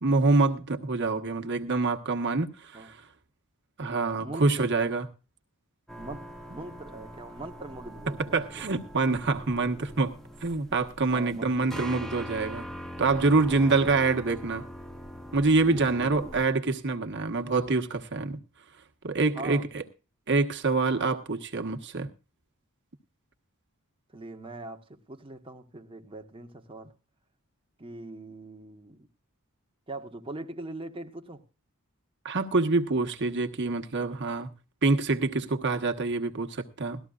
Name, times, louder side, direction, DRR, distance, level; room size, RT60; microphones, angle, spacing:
voice 1, 0.0-3.0 3.8-5.1 8.3-10.1 10.4-12.7 13.0-14.6 15.3-18.4 19.0-19.8 20.3-22.1 32.2-34.5 34.8-37.0, right 3 dB, 55° right, 1.3 m, -26 dB
voice 2, 4.2-4.5 6.0-8.7 11.1-11.8 13.5-14.0 15.7-16.3 19.3-19.6 24.1-26.9 27.8-29.1 29.9-31.4, right 2 dB, 25° right, 1.2 m, -42 dB
sound 1, 5.9-16.5, equal, ahead, 1.0 m, -42 dB
19.0 x 13.5 x 2.4 m
head